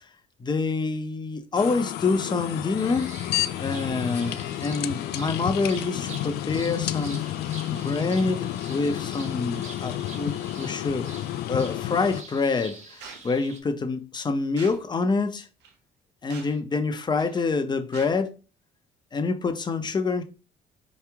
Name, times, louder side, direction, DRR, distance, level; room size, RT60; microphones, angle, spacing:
voice 1, 0.4-3.1 3.6-7.3 7.7-11.1 11.5-12.8 13.2-15.5 16.2-18.3 19.1-20.2, left 4 dB, 25° left, 0.8 m, -26 dB
sound 1, 1.5-12.2, left 13 dB, 70° left, 0.4 m, -31 dB
sound 2, 2.8-13.6, right 4 dB, 45° right, 1.1 m, -46 dB
sound 3, 13.0-13.2 14.6-14.8 15.6-15.7 16.3-16.6 17.2-17.5 17.9-18.1, right 6 dB, 85° right, 0.9 m, -44 dB
4.6 x 3.0 x 3.5 m
cardioid pair, 110°, 17 cm